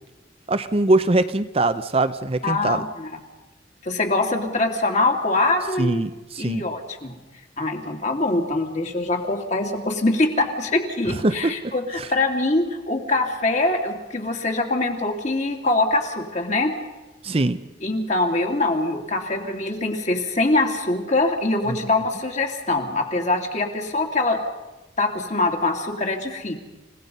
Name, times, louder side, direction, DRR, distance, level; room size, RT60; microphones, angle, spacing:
voice 1, 0.5-2.8 5.8-6.6 11.1-12.1 17.2-17.6 21.7-21.8, right 2 dB, 35° right, 10 dB, 0.7 m, -22 dB
voice 2, 2.4-3.1 3.8-6.0 6.4-7.2 7.6-16.7 17.8-24.4 25.0-26.5, left 2 dB, 40° left, 2 dB, 2.8 m, -23 dB
29.0 x 17.0 x 5.5 m, 1.1 s
head